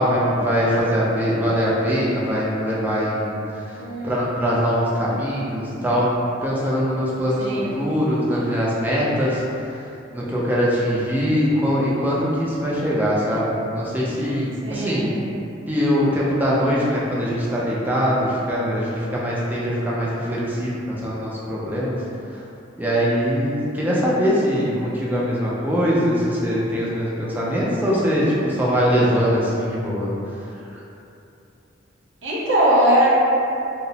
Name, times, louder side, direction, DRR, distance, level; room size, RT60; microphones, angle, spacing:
voice 1, 0.0-6.1 6.4-9.8 10.1-15.1 15.7-22.0 22.3-22.4 22.8-30.1 30.7-30.8, equal, 10° right, -6 dB, 0.4 m, -22 dB
voice 2, 3.7-4.3 7.4-7.7 14.6-15.1 32.2-33.1, right 1 dB, 80° right, -6 dB, 0.6 m, -20 dB
2.8 x 2.0 x 2.7 m, 2.8 s
head